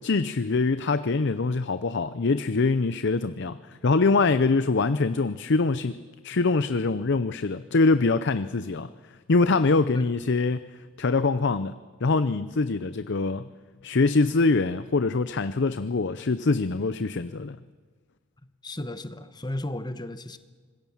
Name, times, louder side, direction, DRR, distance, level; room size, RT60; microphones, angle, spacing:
voice 1, 0.0-6.0 6.2-8.9 9.3-10.7 11.0-11.7 12.0-13.5 13.8-17.6, left 3 dB, 55° left, 13 dB, 0.6 m, -24 dB
voice 2, 18.6-20.4, left 1 dB, 20° left, 11 dB, 1.1 m, -34 dB
25.5 x 21.0 x 7.2 m, 1.5 s
head